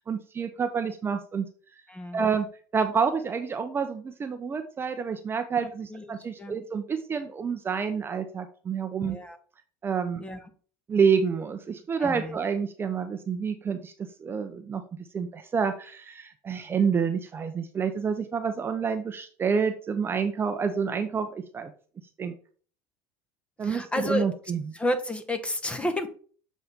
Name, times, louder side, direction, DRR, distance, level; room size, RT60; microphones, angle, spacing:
voice 1, 0.0-1.5 2.1-2.5 2.7-9.2 9.8-10.2 10.9-13.9 14.2-14.8 15.1-21.7 22.2-22.3 23.6-24.7, right 6 dB, 25° right, 8 dB, 0.6 m, -28 dB
voice 2, 1.9-2.3 5.6-6.5 9.0-9.4 10.2-10.5 12.0-12.4 23.6-24.3 24.7-26.1, left 1 dB, 15° left, 10 dB, 1.0 m, -31 dB
7.6 x 4.1 x 3.5 m, 0.44 s
supercardioid pair, 110°, 9 cm